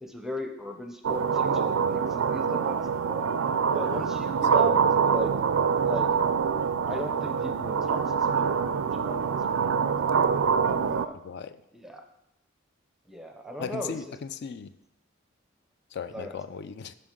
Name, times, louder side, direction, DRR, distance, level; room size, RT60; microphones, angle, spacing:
voice 1, 0.0-3.3 3.7-5.3 5.8-6.2 6.9-9.4 9.7-10.2 10.6-11.2 11.7-12.0 13.1-14.1 16.1-16.4, equal, ahead, 0.6 m, -38 dB
sound 1, 1.0-11.1, right 6 dB, 80° right, 0.4 m, -25 dB
voice 2, 11.2-11.6 13.6-14.7 15.9-17.0, left 6 dB, 55° left, 0.4 m, -37 dB
11.5 x 5.1 x 3.7 m
head